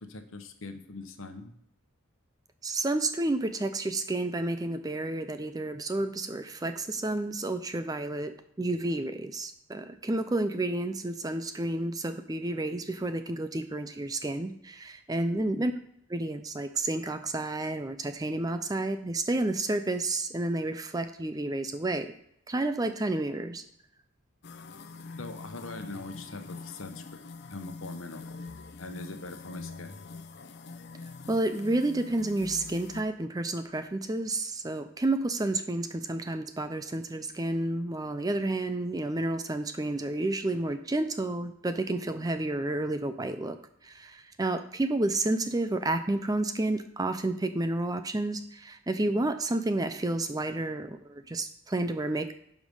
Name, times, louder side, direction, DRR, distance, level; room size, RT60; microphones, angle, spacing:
voice 1, 0.1-1.5 15.3-15.7 25.2-27.2 27.5-28.4 28.8-30.0 49.0-49.3, left 2 dB, 65° left, 7 dB, 1.1 m, -42 dB
voice 2, 2.6-15.7 16.1-22.1 22.5-23.6 31.3-43.6 43.8-52.3, right 2 dB, 15° right, 9 dB, 0.4 m, -30 dB
sound 1, 24.4-33.0, left 3 dB, 50° left, 0.6 m, -44 dB
11.5 x 5.2 x 5.4 m, 0.75 s
head